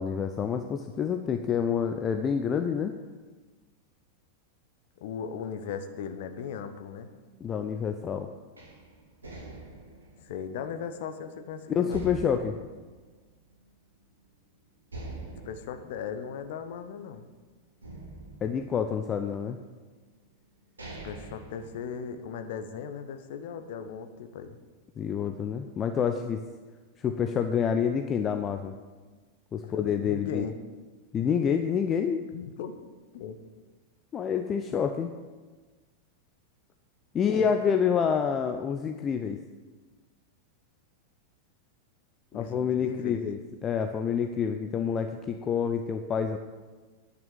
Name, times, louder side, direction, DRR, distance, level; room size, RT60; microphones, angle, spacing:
voice 1, 0.0-2.9 7.4-8.3 11.8-12.6 18.4-19.6 25.0-26.4 27.0-28.7 29.5-30.5 31.1-32.2 34.1-35.1 37.1-39.4 42.3-46.4, left 7 dB, 25° left, 6 dB, 0.6 m, -28 dB
voice 2, 5.0-7.1 10.2-12.0 15.4-17.2 21.0-24.6 29.6-30.5 32.3-32.7 33.1-33.4 37.3-37.5 42.3-43.2, left 7 dB, 55° left, 8 dB, 1.0 m, -37 dB
sound 1, 8.6-11.4 11.9-13.8 14.2-14.3 14.9-17.3 17.8-19.4 20.1-20.2 20.6-22.4, right 2 dB, 75° right, 2.7 m, -45 dB
10.5 x 6.1 x 8.0 m, 1.3 s
figure-of-eight pair, 90°, 0 cm